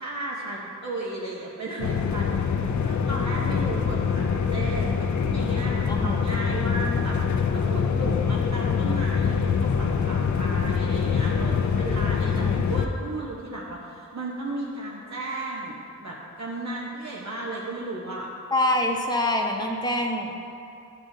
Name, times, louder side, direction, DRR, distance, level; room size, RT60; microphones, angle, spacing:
voice 1, 0.0-18.3, right 2 dB, 60° right, -4 dB, 0.9 m, -34 dB
sound 1, 1.8-12.9, left 6 dB, 65° left, 0.5 m, -24 dB
voice 2, 5.9-6.5 12.2-12.6 18.5-20.3, left 1 dB, 15° left, 1 dB, 0.8 m, -26 dB
12.5 x 7.6 x 2.7 m, 2.7 s
wide cardioid pair, 125°, 31 cm